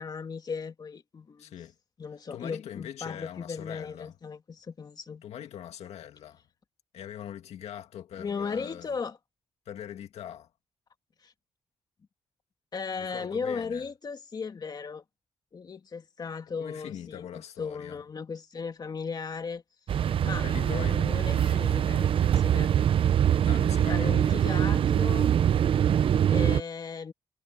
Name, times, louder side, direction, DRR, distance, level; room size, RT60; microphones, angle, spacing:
voice 1, 0.0-1.5 2.0-5.2 8.2-9.2 11.2-11.3 12.7-15.0 15.5-19.6 20.0-22.7 23.9-25.3 26.3-27.1, left 5 dB, 40° left, 2.5 m, -36 dB
voice 2, 1.4-1.7 2.3-4.1 5.2-6.4 6.9-8.9 9.7-10.5 13.0-13.9 16.6-18.0 20.4-22.1 23.4-24.4, left 10 dB, 80° left, 2.0 m, -42 dB
sound 1, 19.9-26.6, right 9 dB, 55° right, 0.5 m, -23 dB
cardioid pair, 115°, 11 cm